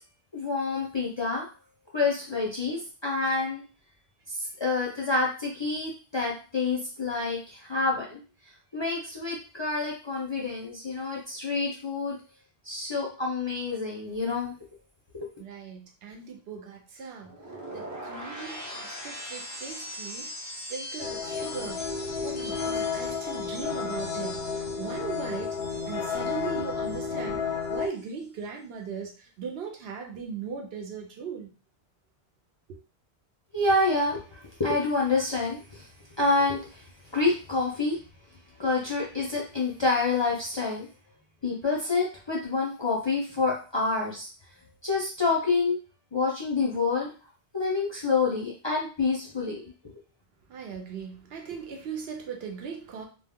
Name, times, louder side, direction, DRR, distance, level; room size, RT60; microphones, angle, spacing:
voice 1, 0.3-1.5 1.9-3.6 4.3-8.2 8.7-12.2 12.6-14.5 15.1-15.3 33.5-35.9 36.2-38.0 38.6-40.9 41.4-44.3 44.8-45.8 46.1-47.1 47.5-49.7, left 3 dB, 40° left, 0.4 m, -28 dB
voice 2, 15.4-20.3 20.7-25.6 25.8-31.5 32.7-32.8 50.5-53.1, right 6 dB, 75° right, 0.9 m, -39 dB
sound 1, 17.2-27.3 27.6-28.1, equal, 20° right, 0.5 m, -41 dB
sound 2, 21.0-27.9, left 6 dB, 90° left, 0.8 m, -32 dB
2.2 x 2.1 x 3.5 m
omnidirectional pair, 1.1 m